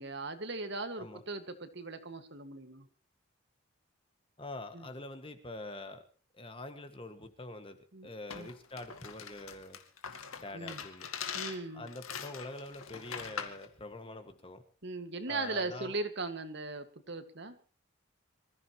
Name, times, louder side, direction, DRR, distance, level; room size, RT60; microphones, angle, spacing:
voice 1, 0.0-2.9 4.7-4.9 7.9-8.1 8.3-8.5 10.5-10.8 11.3-11.9 14.8-17.6, right 3 dB, 55° right, 8 dB, 1.9 m, -38 dB
voice 2, 4.4-6.0 6.3-7.8 8.0-9.8 10.3-11.1 11.7-14.6 15.3-15.9, left 2 dB, 25° left, 7 dB, 1.8 m, -45 dB
sound 1, 8.3-13.6, left 7 dB, 80° left, 2.2 m, -42 dB
26.0 x 15.0 x 3.1 m, 0.38 s
head